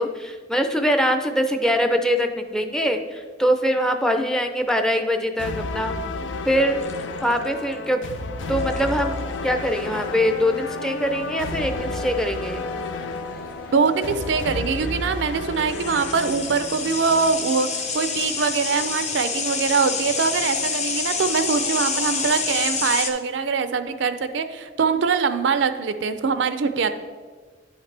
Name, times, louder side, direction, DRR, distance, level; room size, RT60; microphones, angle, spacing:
voice 1, 0.0-6.0 6.5-6.8 7.2-8.0 8.5-9.2 9.4-12.6, equal, 5° left, 5 dB, 0.5 m, -23 dB
sound 1, 5.4-17.4, left 3 dB, 75° left, 0.5 m, -31 dB
sound 2, 6.8-7.6 8.6-9.0 11.4-11.6 13.9-14.0 14.2-14.3 15.5-23.1, left 5 dB, 35° left, 0.7 m, -28 dB
sound 3, 8.3-23.0, equal, 50° left, 1.5 m, -42 dB
voice 2, 13.7-17.7 17.9-26.9, right 5 dB, 70° right, 10 dB, 0.5 m, -23 dB
10.0 x 5.8 x 3.3 m, 1.5 s
head